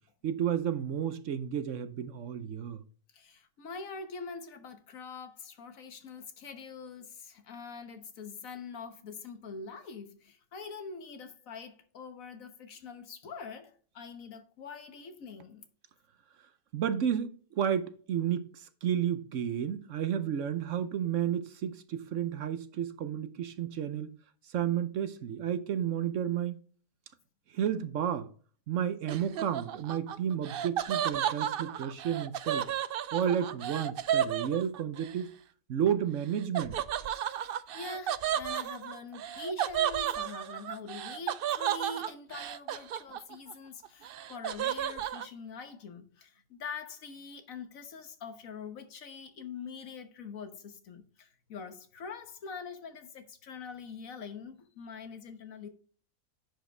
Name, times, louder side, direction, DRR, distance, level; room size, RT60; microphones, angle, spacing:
voice 1, 0.2-2.8 16.7-24.1 24.5-26.6 27.5-28.3 28.7-32.7 33.1-35.3 35.7-36.8, right 9 dB, 65° right, 1.0 m, -32 dB
voice 2, 3.1-15.6 37.4-55.7, left 4 dB, 70° left, 1.5 m, -44 dB
Laughter, 29.1-35.1 36.5-43.5 43.8-45.3, right 10 dB, 90° right, 0.5 m, -33 dB
10.0 x 5.0 x 3.2 m
omnidirectional pair, 1.5 m